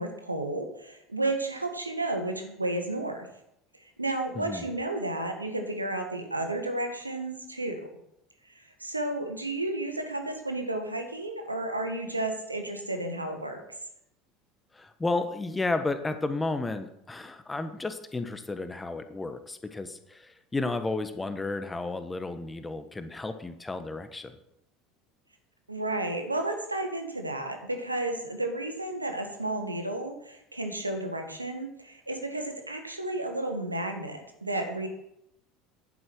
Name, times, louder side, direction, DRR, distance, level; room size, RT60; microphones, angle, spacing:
voice 1, 0.0-3.3 4.0-7.8 8.8-13.6 25.7-34.9, right 2 dB, 85° right, 5 dB, 1.7 m, -32 dB
voice 2, 4.3-4.7 14.7-24.4, left 3 dB, 15° left, 9 dB, 1.4 m, -32 dB
11.0 x 9.3 x 6.3 m, 0.79 s
figure-of-eight pair, 70°, 0 cm